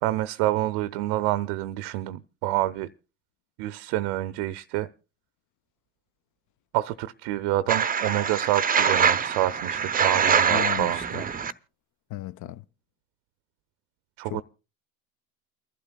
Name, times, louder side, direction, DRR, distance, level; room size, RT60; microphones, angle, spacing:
voice 1, 0.0-2.9 3.6-4.9 6.7-11.3 14.2-14.4, right 16 dB, 70° right, 0.6 m, -27 dB
sound 1, 7.7-11.5, right 6 dB, 20° right, 0.6 m, -24 dB
voice 2, 10.5-11.2 12.1-12.6 14.2-14.4, left 15 dB, 45° left, 0.6 m, -35 dB
29.0 x 11.5 x 2.2 m
hypercardioid pair, 60°, 42 cm